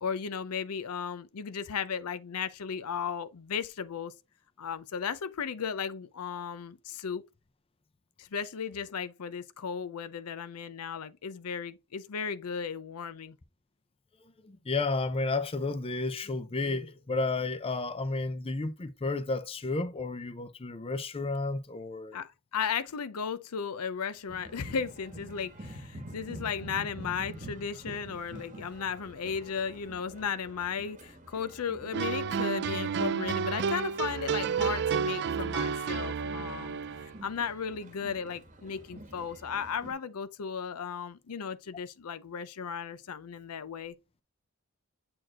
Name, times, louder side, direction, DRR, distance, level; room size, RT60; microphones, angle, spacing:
voice 1, 0.0-4.1 4.6-7.2 8.2-13.4 22.1-43.9, left 6 dB, 80° left, 0.6 m, -35 dB
voice 2, 14.4-22.2, left 3 dB, 25° left, 0.5 m, -32 dB
sound 1, 24.3-39.9, right 1 dB, 35° right, 1.1 m, -47 dB
sound 2, 31.9-37.1, right 6 dB, 50° right, 0.4 m, -31 dB
7.7 x 4.4 x 2.9 m
head